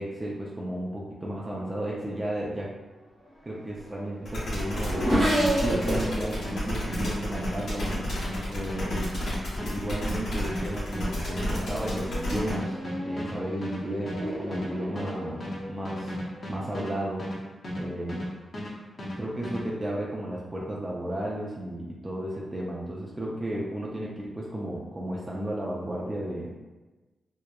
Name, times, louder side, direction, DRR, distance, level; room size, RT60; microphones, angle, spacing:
voice 1, 0.0-2.7 3.4-5.1 5.5-8.1 8.5-9.1 9.5-12.8 13.0-16.1 16.5-17.3 17.8-18.2 19.2-26.5, right 1 dB, 25° right, -4 dB, 0.4 m, -33 dB
Race car auto racing / Accelerating revving vroom, 3.2-9.1 9.9-10.3 10.7-16.6, equal, 60° right, 1.0 m, -33 dB
sound 1, 4.2-12.5, left 1 dB, 75° left, 0.9 m, -32 dB
sound 2, 5.3-18.3 18.5-19.6, left 1 dB, 50° left, 0.6 m, -35 dB
2.8 x 2.1 x 2.3 m, 1.2 s
cardioid pair, 70°, 0 cm